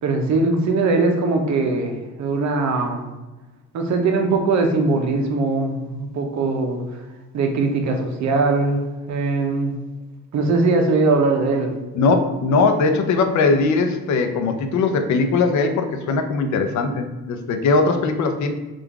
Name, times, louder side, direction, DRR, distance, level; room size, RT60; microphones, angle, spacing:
voice 1, 0.0-3.0 3.7-6.8 7.3-9.8 10.3-11.7, right 3 dB, 65° right, 3 dB, 0.8 m, -21 dB
voice 2, 11.9-18.5, left 3 dB, 70° left, 6 dB, 0.6 m, -20 dB
3.7 x 2.5 x 4.5 m, 1.2 s
cardioid pair, 90°, 30 cm